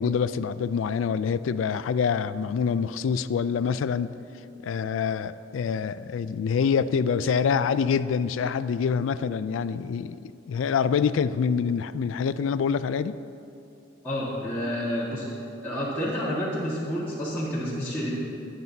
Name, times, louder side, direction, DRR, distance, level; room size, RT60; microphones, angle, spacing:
voice 1, 0.0-4.1 4.6-13.1, left 6 dB, 85° left, 14 dB, 0.3 m, -26 dB
voice 2, 14.0-15.2 15.6-18.1, equal, 10° left, -10 dB, 1.6 m, -29 dB
20.0 x 7.7 x 2.7 m, 2.8 s
head